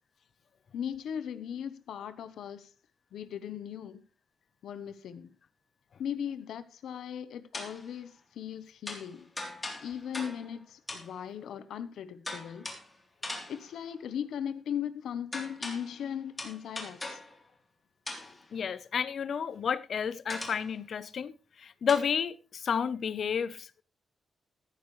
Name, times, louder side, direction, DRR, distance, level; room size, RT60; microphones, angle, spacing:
voice 1, 0.7-2.7 3.1-4.0 4.6-5.3 6.0-9.3 9.8-12.7 13.5-17.2, left 8 dB, 80° left, 1.0 m, -38 dB
sound 1, 7.5-7.9 8.9-10.6 10.9-11.2 12.3-13.0 13.2-13.8 15.3-16.1 16.4-17.4 18.1-18.5 20.3-20.7 21.9-22.0, left 2 dB, 15° left, 3.4 m, -40 dB
voice 2, 18.5-21.3 21.6-23.8, left 7 dB, 50° left, 0.8 m, -31 dB
15.0 x 13.5 x 3.2 m
wide cardioid pair, 175°, 0 cm